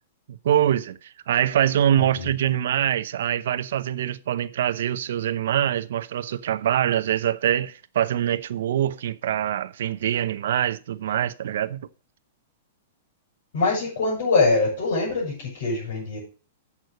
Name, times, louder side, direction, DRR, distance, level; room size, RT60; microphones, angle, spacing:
voice 1, 0.3-11.8, right 10 dB, 70° right, 0.7 m, -24 dB
voice 2, 2.0-2.3 13.5-16.2, left 3 dB, 65° left, 6.4 m, -23 dB
8.1 x 6.1 x 6.5 m
hypercardioid pair, 155°, 0 cm